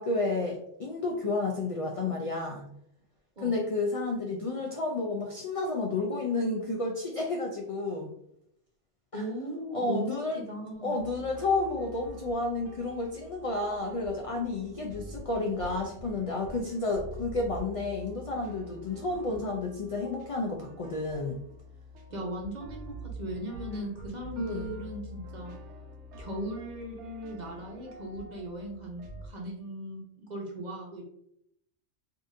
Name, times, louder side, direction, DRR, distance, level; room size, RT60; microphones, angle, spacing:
voice 1, 0.0-2.6 3.4-8.1 9.1-9.2 9.7-10.4 10.8-21.4 24.4-24.7, left 3 dB, 60° left, 0 dB, 0.3 m, -31 dB
voice 2, 9.1-11.0 22.1-25.5 26.2-31.0, right 1 dB, 45° right, 0 dB, 0.7 m, -38 dB
sound 1, 11.0-29.3, equal, 80° right, 0.9 m, -46 dB
3.6 x 2.6 x 2.6 m, 0.74 s
omnidirectional pair, 1.2 m